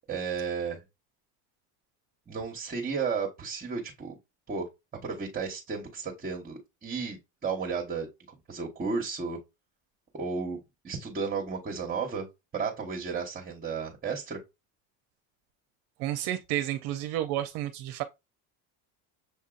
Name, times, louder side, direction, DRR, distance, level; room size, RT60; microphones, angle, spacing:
voice 1, 0.1-0.8 2.3-4.1 4.5-4.7 5.0-8.1 8.5-9.4 10.1-12.3 12.5-14.4, right 5 dB, 20° right, 1.1 m, -33 dB
voice 2, 16.0-18.0, right 12 dB, 60° right, 0.6 m, -31 dB
6.8 x 2.7 x 2.4 m
supercardioid pair, 120°, 42 cm